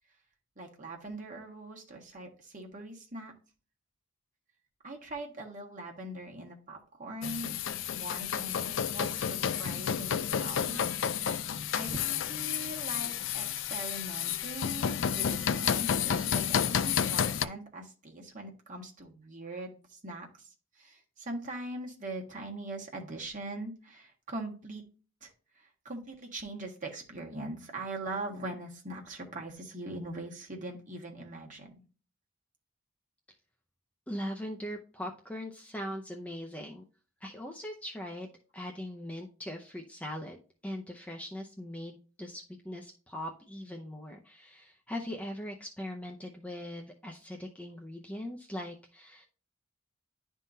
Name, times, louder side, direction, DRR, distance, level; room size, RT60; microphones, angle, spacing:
voice 1, 0.6-3.3 4.8-7.6 7.9-10.9 11.7-24.8 25.2-31.8, right 2 dB, 40° right, 0 dB, 1.5 m, -42 dB
sound 1, 7.2-17.5, left 8 dB, 60° left, 0.4 m, -31 dB
voice 2, 34.1-36.8 37.2-40.4 40.6-49.3, left 1 dB, 5° left, 1 dB, 0.6 m, -40 dB
11.0 x 3.7 x 2.7 m, 0.37 s
head